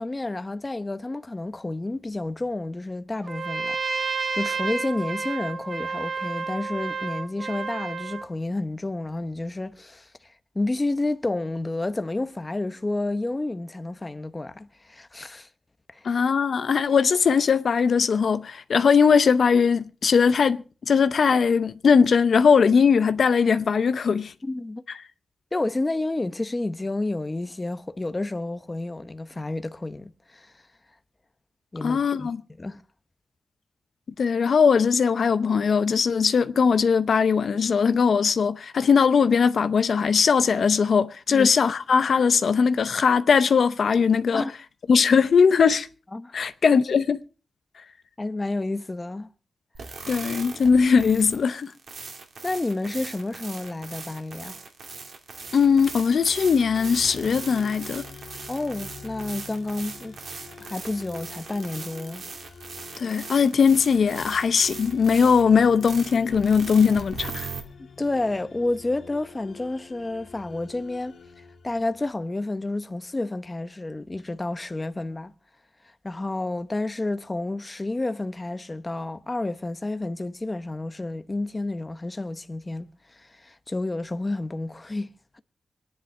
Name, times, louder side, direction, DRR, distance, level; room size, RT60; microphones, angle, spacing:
voice 1, 0.0-10.1 10.5-15.5 15.9-16.2 24.4-24.8 25.5-30.5 31.7-32.8 41.3-41.5 44.3-44.5 46.1-46.4 48.2-49.3 52.4-54.6 58.5-60.2 60.6-62.2 67.8-71.1 71.6-75.3 76.0-85.4, left 2 dB, 20° left, 0.8 m, -30 dB
Trumpet, 3.2-8.3, right 4 dB, 45° right, 2.1 m, -30 dB
voice 2, 16.0-24.3 31.8-32.4 34.2-44.4 44.9-45.9 46.3-47.2 50.1-51.7 55.5-58.0 63.0-67.5, left 6 dB, 70° left, 0.7 m, -20 dB
sound 1, 49.7-67.6, right 4 dB, 70° right, 2.5 m, -40 dB
sound 2, 55.3-72.4, left 5 dB, 85° left, 2.0 m, -46 dB
25.5 x 10.5 x 3.2 m
wide cardioid pair, 140°, 0 cm